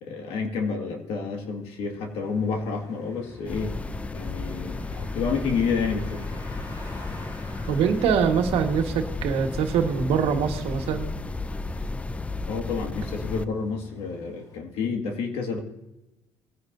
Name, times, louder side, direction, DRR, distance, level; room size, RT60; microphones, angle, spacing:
voice 1, 0.0-3.8 4.1-6.4 12.5-15.6, left 5 dB, 90° left, 4 dB, 2.0 m, -29 dB
sound 1, 1.4-14.6, left 2 dB, 35° left, 3.6 m, -47 dB
sound 2, 3.4-13.4, left 3 dB, 15° left, 0.4 m, -33 dB
voice 2, 7.7-11.1, right 7 dB, 80° right, 4 dB, 1.6 m, -24 dB
19.5 x 10.5 x 2.7 m, 0.92 s
cardioid pair, 125°, 10 cm